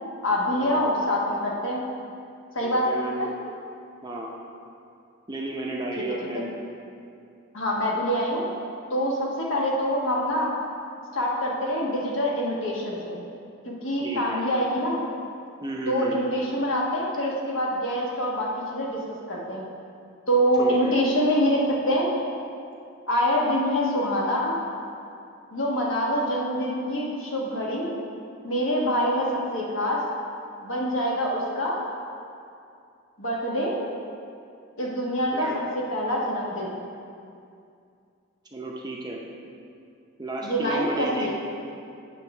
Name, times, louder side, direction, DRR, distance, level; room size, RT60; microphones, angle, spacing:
voice 1, 0.2-1.8 2.5-2.9 3.2-3.3 7.5-8.5 8.9-10.5 11.1-13.2 13.6-15.0 15.9-19.0 19.3-19.6 20.3-21.6 21.9-22.1 23.1-24.6 25.5-27.9 28.4-30.0 30.6-31.8 33.2-33.8 34.8-35.5 35.7-36.8 40.4-41.3, equal, 60° left, -3 dB, 1.3 m, -25 dB
voice 2, 2.6-3.3 4.0-4.3 5.3-6.5 14.0-14.4 15.6-16.2 20.6-21.0 35.3-35.6 38.5-39.2 40.2-41.3, right 1 dB, 20° right, -2 dB, 0.6 m, -32 dB
8.7 x 3.6 x 5.9 m, 2.5 s
head